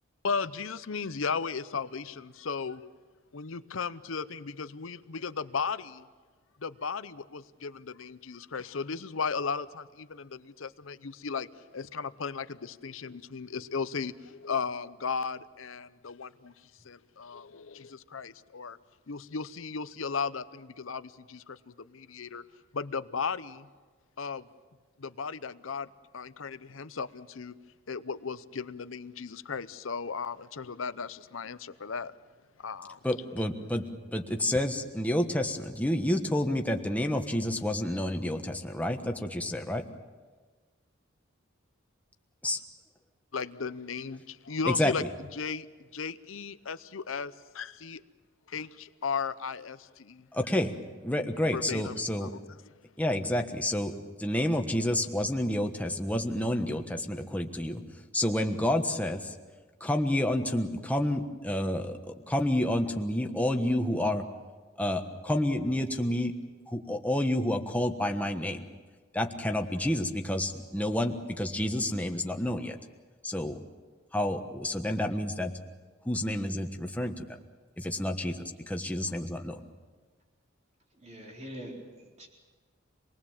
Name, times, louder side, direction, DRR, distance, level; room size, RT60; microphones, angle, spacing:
voice 1, 0.2-2.8 3.3-6.1 6.6-11.5 11.7-16.5 16.8-18.8 19.1-22.4 22.7-23.7 24.2-24.5 25.0-27.5 27.9-32.1 32.6-33.0 43.3-45.0 45.3-45.7 45.9-48.0 48.5-50.3 51.5-52.4, left 5 dB, 75° left, 14 dB, 0.8 m, -36 dB
voice 2, 33.0-39.8 42.4-42.6 44.6-45.1 50.3-50.7 51.0-52.3 53.0-53.9 54.2-57.8 58.1-59.3 59.8-64.2 64.8-66.3 66.7-68.6 69.1-72.8 73.2-73.6 74.1-75.5 76.0-77.4 77.8-79.6, left 1 dB, 5° left, 4 dB, 1.3 m, -29 dB
voice 3, 81.0-82.3, equal, 35° right, -1 dB, 4.3 m, -44 dB
26.5 x 20.0 x 7.3 m, 1.4 s
head